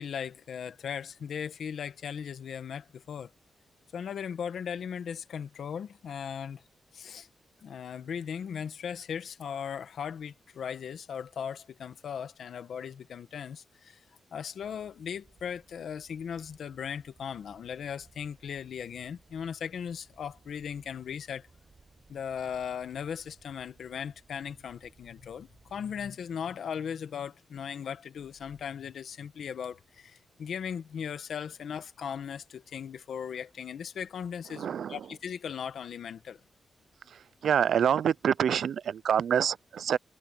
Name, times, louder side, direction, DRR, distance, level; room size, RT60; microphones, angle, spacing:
voice 1, 0.0-3.3 3.9-6.6 6.9-7.3 7.6-14.0 14.3-21.5 22.1-36.4, left 7 dB, 80° left, 1.4 m, -38 dB
sound 1, 14.6-26.1, right 4 dB, 40° right, 7.0 m, -62 dB
voice 2, 34.5-35.0 37.1-40.0, right 8 dB, 80° right, 0.4 m, -27 dB
wide cardioid pair, 110°, 0 cm